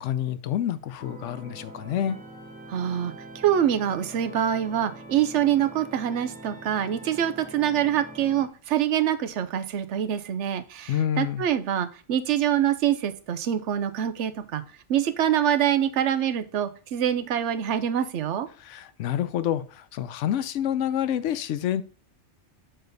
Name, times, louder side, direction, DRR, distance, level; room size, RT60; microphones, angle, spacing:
voice 1, 0.0-2.2 10.9-11.4 18.6-21.8, left 10 dB, 85° left, 0.9 m, -28 dB
sound 1, 1.0-8.5, right 1 dB, 10° right, 0.6 m, -44 dB
voice 2, 2.7-3.1 3.4-14.6 14.9-18.5, right 10 dB, 80° right, 1.0 m, -25 dB
6.8 x 4.0 x 3.9 m
omnidirectional pair, 1.2 m